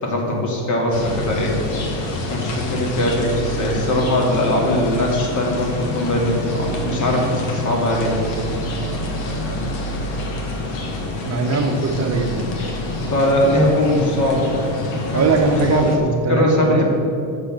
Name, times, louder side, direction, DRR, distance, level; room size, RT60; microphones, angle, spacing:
voice 1, 0.0-1.5 2.3-8.2 13.1-14.5 15.0-15.9 16.3-16.9, left 1 dB, 40° left, -1 dB, 2.3 m, -20 dB
sound 1, 0.9-16.0, left 2 dB, 70° left, 1.5 m, -27 dB
voice 2, 11.3-12.4 15.1-16.9, right 4 dB, 35° right, 4 dB, 1.1 m, -21 dB
6.9 x 6.6 x 7.4 m, 2.6 s
cardioid pair, 110°, 47 cm